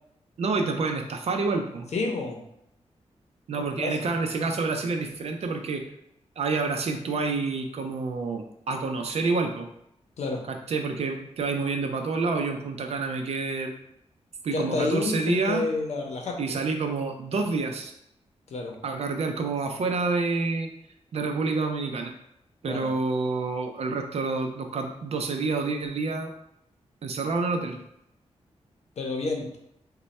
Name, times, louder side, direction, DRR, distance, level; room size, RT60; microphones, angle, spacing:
voice 1, 0.4-1.9 3.5-5.8 6.4-9.7 10.5-13.8 14.4-15.6 16.4-17.9 18.8-20.7 21.1-22.1 22.6-26.3 27.0-27.8, right 3 dB, 65° right, 4 dB, 0.5 m, -28 dB
voice 2, 1.9-2.4 3.8-4.1 10.2-10.4 14.5-16.6 18.5-18.7 22.7-22.9 29.0-29.6, left 3 dB, 75° left, 1 dB, 0.7 m, -29 dB
3.2 x 2.2 x 4.1 m, 0.78 s
wide cardioid pair, 140°, 11 cm